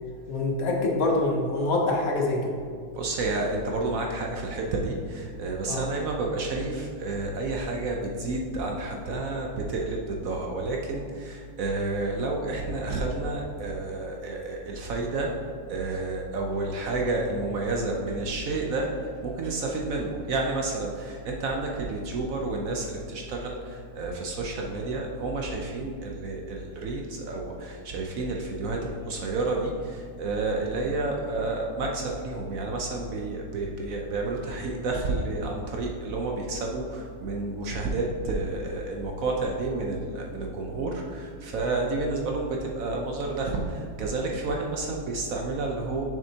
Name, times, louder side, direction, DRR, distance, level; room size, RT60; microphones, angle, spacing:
voice 1, 0.3-2.6 5.7-5.8, left 2 dB, 60° left, 0 dB, 1.2 m, -25 dB
voice 2, 2.9-46.0, right 2 dB, 65° right, 1 dB, 1.0 m, -30 dB
7.0 x 6.4 x 2.8 m, 2.1 s
omnidirectional pair, 1.8 m